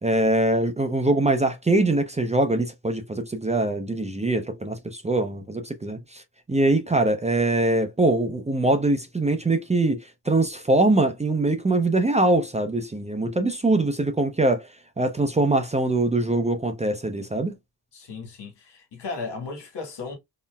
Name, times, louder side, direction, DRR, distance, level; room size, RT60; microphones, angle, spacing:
voice 1, 0.0-6.2 6.5-10.0 10.3-14.7 15.0-17.6, right 2 dB, 15° right, 0.5 m, -23 dB
voice 2, 17.9-20.2, left 4 dB, 75° left, 1.5 m, -35 dB
4.0 x 2.1 x 2.2 m
cardioid pair, 80°, 42 cm